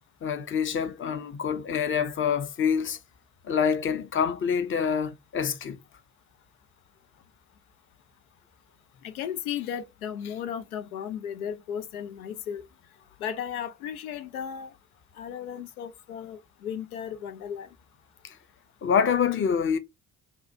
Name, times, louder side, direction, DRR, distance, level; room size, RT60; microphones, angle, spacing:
voice 1, 0.2-3.0 3.4-5.8 18.2-18.3 18.8-19.8, left 7 dB, 30° left, 0.6 m, -26 dB
voice 2, 9.0-12.6 13.2-14.7 15.2-17.7, left 8 dB, 85° left, 0.5 m, -35 dB
3.6 x 2.2 x 2.7 m
figure-of-eight pair, 50°, 42 cm